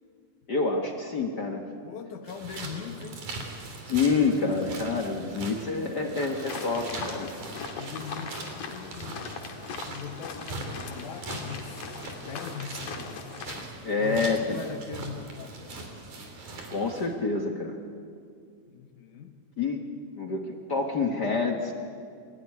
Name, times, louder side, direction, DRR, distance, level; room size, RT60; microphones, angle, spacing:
voice 1, 0.5-1.6 3.9-7.3 13.8-14.6 16.7-17.8 19.6-19.8 20.2-21.7, left 4 dB, 45° left, 2 dB, 1.5 m, -27 dB
voice 2, 1.8-3.3 7.8-13.2 14.0-15.9 18.7-19.4, left 7 dB, 85° left, 5 dB, 2.7 m, -41 dB
sound 1, 2.3-17.1, right 3 dB, 85° right, 4.5 m, -41 dB
sound 2, 6.5-13.6, left 5 dB, 65° left, 2.8 m, -40 dB
24.5 x 16.0 x 9.7 m, 2.3 s
omnidirectional pair, 3.4 m